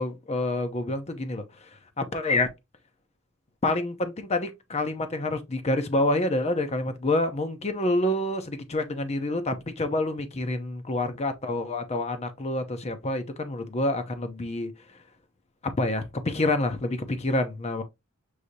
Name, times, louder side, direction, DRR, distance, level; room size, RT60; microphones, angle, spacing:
voice 1, 0.0-1.7 2.0-2.5 3.6-14.7 15.8-17.8, left 2 dB, 30° left, 0.6 m, -27 dB
6.4 x 2.8 x 2.7 m
head